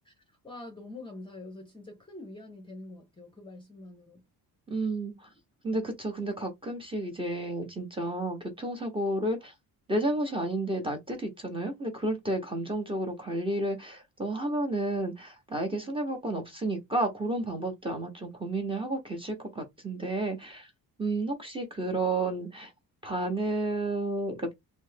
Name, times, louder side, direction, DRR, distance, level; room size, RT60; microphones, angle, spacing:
voice 1, 0.1-4.2, left 2 dB, 15° left, 0.7 m, -45 dB
voice 2, 4.7-5.3 5.6-9.5 9.9-20.7 21.0-22.7 23.0-24.5, right 2 dB, 15° right, 0.9 m, -31 dB
3.3 x 2.1 x 3.3 m
cardioid pair, 160°, 36 cm